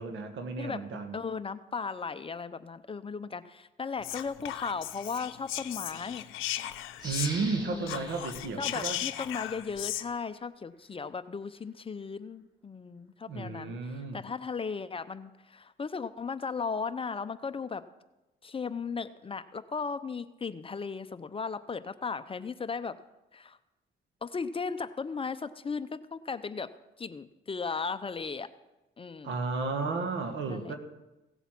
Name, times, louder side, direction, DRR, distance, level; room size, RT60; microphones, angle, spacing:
voice 1, 0.0-1.2 7.0-9.0 13.3-14.2 29.2-30.8, right 4 dB, 75° right, 6 dB, 1.8 m, -33 dB
voice 2, 1.1-6.2 7.6-8.0 8.6-17.8 18.4-23.0 23.3-23.6 24.2-26.7 27.0-28.5 29.0-29.4 30.5-30.7, left 5 dB, 25° left, 12 dB, 0.6 m, -36 dB
Whispering, 4.0-7.6 7.8-10.1, left 14 dB, 90° left, 0.6 m, -37 dB
sound 1, 7.0-9.7 10.1-10.2, equal, 20° right, 2.9 m, -44 dB
16.5 x 8.0 x 6.0 m, 1.0 s
cardioid pair, 90°, 20 cm